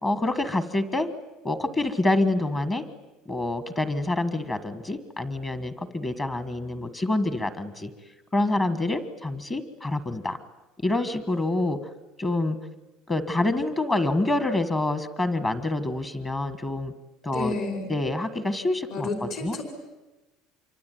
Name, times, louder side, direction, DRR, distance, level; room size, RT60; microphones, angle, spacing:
voice 1, 0.0-1.1 1.4-2.8 3.3-7.9 8.3-10.4 10.8-11.8 12.2-12.6 13.1-16.9 17.2-17.5 17.9-19.6, left 2 dB, 15° left, 11 dB, 1.5 m, -27 dB
voice 2, 17.3-17.9 18.9-19.6, left 3 dB, 50° left, 4 dB, 5.1 m, -30 dB
26.0 x 24.0 x 9.3 m, 1.1 s
cardioid pair, 170°, 0 cm